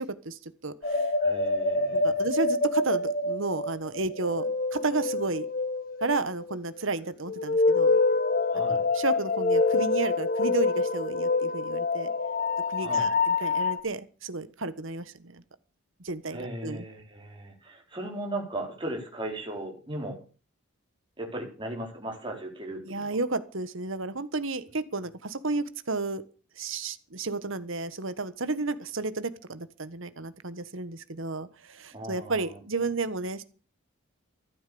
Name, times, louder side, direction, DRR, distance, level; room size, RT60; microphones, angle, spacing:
voice 1, 0.0-1.1 1.9-5.5 6.0-7.9 8.7-12.1 12.7-15.4 16.0-16.8 22.9-26.2 26.6-33.4, right 3 dB, 65° right, 13 dB, 1.4 m, -32 dB
sound 1, 0.8-6.6 7.3-13.8, left 3 dB, 45° left, 1.3 m, -26 dB
voice 2, 1.2-2.2 8.5-8.8 12.8-13.1 16.3-20.2 21.2-23.2 31.9-32.4, right 1 dB, 25° right, 0 dB, 4.4 m, -37 dB
13.5 x 12.0 x 7.0 m, 0.37 s
head